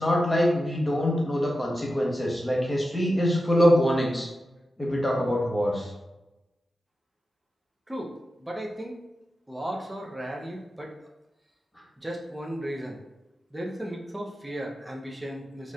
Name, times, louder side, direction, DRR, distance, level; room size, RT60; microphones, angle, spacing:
voice 1, 0.0-4.3 4.8-5.9, equal, 10° left, -2 dB, 1.1 m, -24 dB
voice 2, 8.4-8.9 9.5-10.9 12.0-13.0 13.5-15.7, right 1 dB, 15° right, -1 dB, 0.7 m, -35 dB
4.2 x 3.0 x 2.4 m, 1.0 s
cardioid pair, 75°, 0 cm